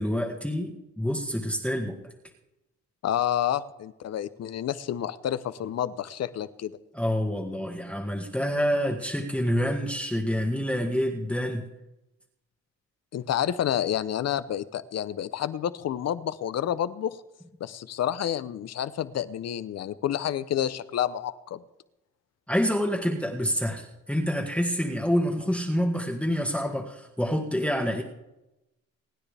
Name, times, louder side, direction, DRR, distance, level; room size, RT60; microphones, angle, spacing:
voice 1, 0.0-2.0 6.9-11.6 22.5-28.0, equal, 5° left, 1 dB, 1.7 m, -27 dB
voice 2, 3.0-6.7 13.1-17.2 17.6-21.6, left 10 dB, 55° left, 15 dB, 0.8 m, -29 dB
26.5 x 9.8 x 3.4 m, 0.96 s
cardioid pair, 90°, 30 cm